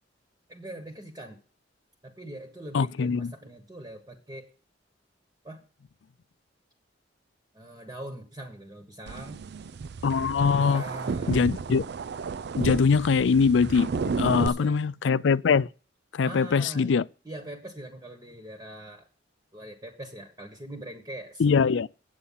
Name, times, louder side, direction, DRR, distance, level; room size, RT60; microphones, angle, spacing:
voice 1, 0.5-1.4 2.0-4.5 5.4-5.6 7.5-9.5 10.6-11.5 14.1-14.8 16.2-16.9 17.2-19.1 19.5-21.4, right 1 dB, 20° right, 1.4 m, -42 dB
voice 2, 2.7-3.3 10.0-10.8 11.3-11.8 12.6-13.9 14.2-15.7 16.1-17.0 21.4-21.9, left 5 dB, 75° left, 0.4 m, -22 dB
sound 1, 9.1-14.5, right 5 dB, 60° right, 0.4 m, -32 dB
8.5 x 8.4 x 5.6 m
head